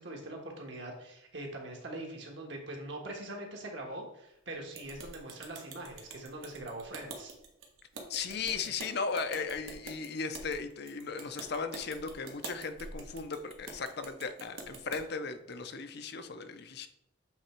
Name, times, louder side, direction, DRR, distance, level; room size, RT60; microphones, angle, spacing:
voice 1, 0.0-7.3 8.6-8.7, right 1 dB, 60° right, 1 dB, 1.5 m, -42 dB
sound 1, 4.7-15.0, right 3 dB, 80° right, 1.4 m, -47 dB
voice 2, 8.1-16.9, left 5 dB, 55° left, 8 dB, 0.6 m, -37 dB
8.0 x 3.5 x 4.4 m, 0.81 s
head